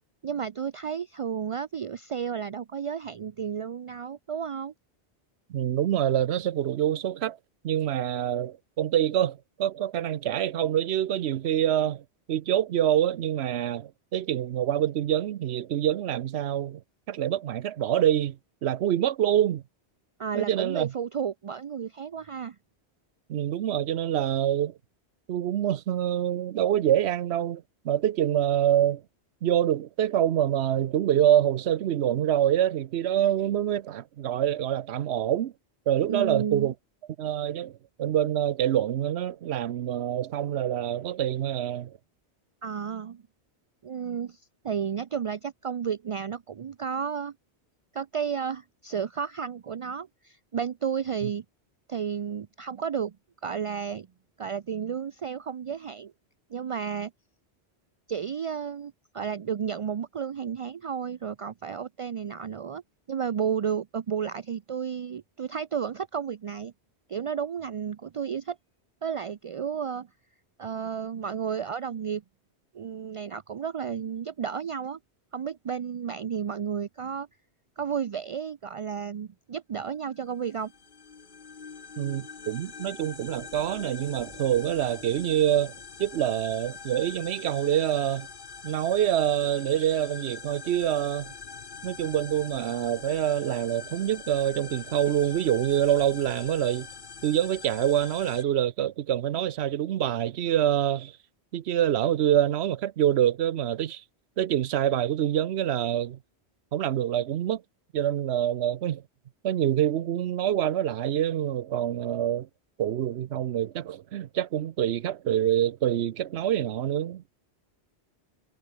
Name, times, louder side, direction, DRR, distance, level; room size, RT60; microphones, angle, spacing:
voice 1, 0.2-4.7 20.2-22.6 36.1-36.7 42.6-43.2 43.8-47.3 47.9-51.4 51.9-53.1 53.4-54.1 54.4-56.1 56.5-57.1 58.1-62.8 63.1-66.7 67.1-68.6 69.0-70.1 70.6-72.2 72.7-75.0 75.3-77.3 77.8-80.7, right 7 dB, 50° right, 0.4 m, -32 dB
voice 2, 5.5-7.4 7.6-12.0 12.3-16.8 17.1-19.6 20.3-20.9 23.3-24.7 25.3-29.0 29.4-35.5 35.9-36.7 37.2-41.9 82.0-85.7 86.0-88.3 88.6-91.3 91.8-96.9 97.2-101.1 101.5-104.0 104.4-106.2 106.7-107.6 107.9-109.0 109.4-112.5 112.8-117.2, right 11 dB, 75° right, 0.9 m, -26 dB
sound 1, 80.3-98.4, left 5 dB, 50° left, 1.3 m, -44 dB
omnidirectional pair, 1.1 m